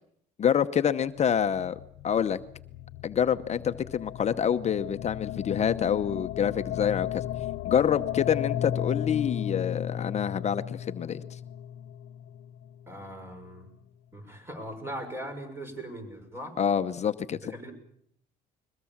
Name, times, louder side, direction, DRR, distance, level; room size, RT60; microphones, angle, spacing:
voice 1, 0.4-2.4 3.0-7.2 7.6-11.4 16.6-17.4, left 8 dB, 40° left, 10 dB, 0.9 m, -27 dB
sound 1, 1.1-13.3, left 11 dB, 80° left, 0.9 m, -35 dB
voice 2, 12.9-13.7 14.1-16.6 17.3-17.7, right 1 dB, 15° right, 6 dB, 6.4 m, -40 dB
22.0 x 21.5 x 7.3 m, 0.68 s
cardioid pair, 110°, 17 cm